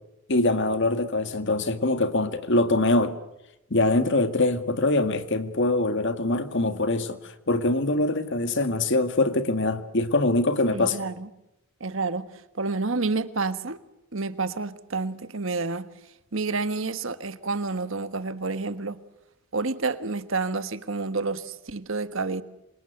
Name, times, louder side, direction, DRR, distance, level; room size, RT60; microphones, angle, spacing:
voice 1, 0.3-3.1 3.7-11.0, left 2 dB, 55° left, 1.8 m, -23 dB
voice 2, 10.7-11.3 11.8-12.3 12.5-13.8 14.1-15.9 16.3-19.0 19.5-22.4, right 3 dB, 60° right, 1.4 m, -29 dB
27.5 x 26.5 x 8.0 m
head